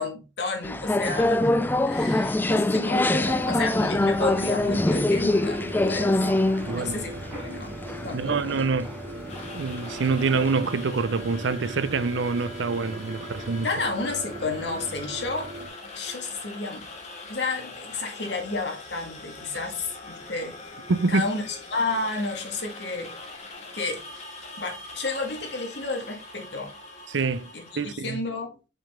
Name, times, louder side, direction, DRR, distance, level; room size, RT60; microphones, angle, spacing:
voice 1, 0.0-6.2 6.7-8.6 13.5-15.5 15.9-16.9 17.3-20.6 21.1-24.0 24.6-26.8 27.5-28.6, left 3 dB, 65° left, 1.8 m, -31 dB
sound 1, 0.6-10.5, left 2 dB, 10° left, 0.3 m, -25 dB
sound 2, 3.2-15.7, right 1 dB, 40° right, 3.2 m, -39 dB
voice 2, 6.7-7.0 8.1-8.9 9.5-13.7 20.9-21.3 27.1-28.2, right 4 dB, 80° right, 0.6 m, -26 dB
sound 3, 9.3-27.9, left 2 dB, 35° left, 1.7 m, -42 dB
5.4 x 5.4 x 3.6 m
head